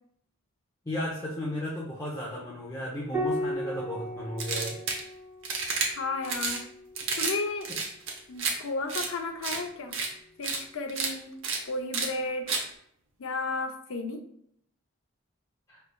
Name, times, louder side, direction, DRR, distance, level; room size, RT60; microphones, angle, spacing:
voice 1, 0.9-4.8 15.7-15.8, left 1 dB, 15° left, -6 dB, 0.6 m, -34 dB
Piano, 3.1-8.0 9.6-10.4, equal, 20° right, 1.3 m, -37 dB
sound 1, 4.4-5.0 5.4-5.9 6.2-6.6 7.0-7.3 7.6-8.5 8.9-9.1 9.4-9.6 9.9-10.1 10.4-10.6 10.9-11.1 11.4-11.6 11.9-12.1 12.5-12.6, right 4 dB, 65° right, 0.8 m, -30 dB
voice 2, 5.9-6.6 7.1-7.7 8.3-9.9 10.4-11.3 11.6-12.4 13.2-14.2, left 3 dB, 70° left, 4 dB, 0.6 m, -33 dB
5.2 x 3.3 x 2.2 m, 0.70 s
head